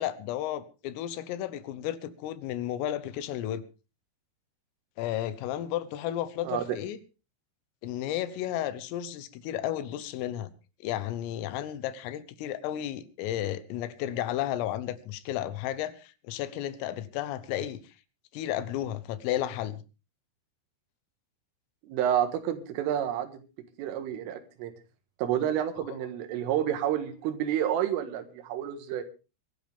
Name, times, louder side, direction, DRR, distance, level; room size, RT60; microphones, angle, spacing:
voice 1, 0.0-3.6 5.0-7.0 7.8-10.5 10.8-17.8 18.3-19.8 25.9-26.0, left 12 dB, 85° left, 14 dB, 3.7 m, -33 dB
voice 2, 21.8-23.3 23.8-24.7 25.2-29.0, right 10 dB, 80° right, 7 dB, 4.2 m, -29 dB
23.0 x 12.5 x 3.5 m, 0.32 s
omnidirectional pair, 5.8 m